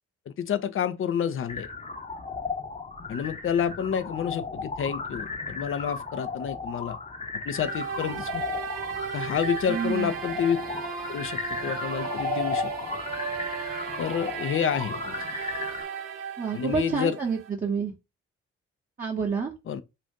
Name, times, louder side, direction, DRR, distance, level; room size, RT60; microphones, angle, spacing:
voice 1, 0.3-1.7 3.1-7.0 7.4-8.4 9.1-10.6 11.1-13.0 14.0-15.2 16.5-17.2 19.7-19.8, left 8 dB, 35° left, 0.5 m, -29 dB
sound 1, 1.5-15.8, left 4 dB, 20° left, 0.8 m, -35 dB
sound 2, 7.5-17.5, right 7 dB, 70° right, 0.8 m, -35 dB
voice 2, 9.7-10.1 16.4-17.9 19.0-19.5, right 6 dB, 25° right, 0.8 m, -28 dB
2.6 x 2.5 x 3.6 m
hypercardioid pair, 40°, 35 cm